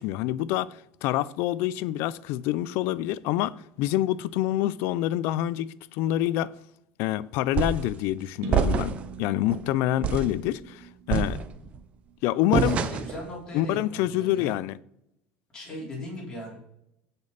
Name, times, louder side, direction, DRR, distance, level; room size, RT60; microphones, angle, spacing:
voice 1, 0.0-6.5 7.0-11.4 12.2-12.8 13.5-14.8, left 14 dB, 55° left, 0.4 m, -27 dB
sound 1, 7.6-7.9 8.5-9.1 9.5-9.6 10.0-10.4 11.1-11.8 12.5-13.2, right 7 dB, 25° right, 0.6 m, -26 dB
sound 2, 8.4-12.3, right 7 dB, 50° right, 1.1 m, -43 dB
voice 2, 12.5-14.5 15.5-16.6, left 1 dB, 15° left, 3.8 m, -38 dB
16.0 x 5.3 x 4.0 m
cardioid pair, 180°, 5 cm